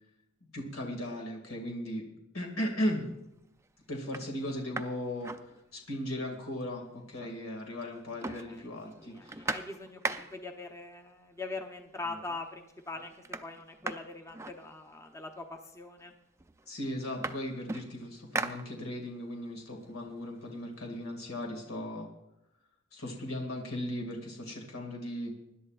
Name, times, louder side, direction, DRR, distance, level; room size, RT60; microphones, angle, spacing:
voice 1, 0.5-2.0 2.3-3.1 3.9-5.3 5.7-9.5 16.7-22.1 22.9-25.3, left 1 dB, 80° left, 1 dB, 2.1 m, -37 dB
sound 1, 2.6-3.1 3.6-3.7 4.0-6.1 6.4-6.5 6.7-7.6 7.9-10.6 11.5-11.6 12.0-12.5 12.8-15.2 16.0-16.1 16.4-19.2 19.6-21.3, right 2 dB, 15° right, 0.4 m, -40 dB
voice 2, 8.5-13.1 13.4-16.1, left 3 dB, 15° left, 3 dB, 0.8 m, -42 dB
24.5 x 11.0 x 2.4 m, 0.87 s
head